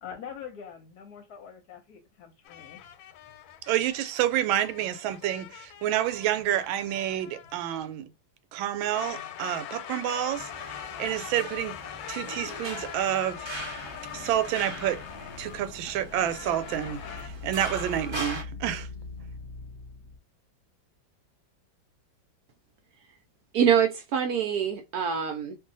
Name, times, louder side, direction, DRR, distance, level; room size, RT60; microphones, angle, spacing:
voice 1, 0.0-2.8, left 8 dB, 65° left, 1.1 m, -44 dB
sound 1, 2.4-7.9 8.8-15.8 16.1-17.3, left 10 dB, 90° left, 1.4 m, -42 dB
voice 2, 3.7-8.1 8.5-11.7 12.1-13.5 14.1-15.0 15.4-18.9, right 11 dB, 90° right, 1.4 m, -29 dB
sound 2, 10.3-18.4, right 1 dB, 35° right, 0.4 m, -41 dB
sound 3, 13.5-20.2, left 4 dB, 40° left, 1.0 m, -43 dB
voice 3, 23.5-25.6, right 8 dB, 70° right, 0.9 m, -25 dB
2.7 x 2.6 x 3.8 m
omnidirectional pair, 2.1 m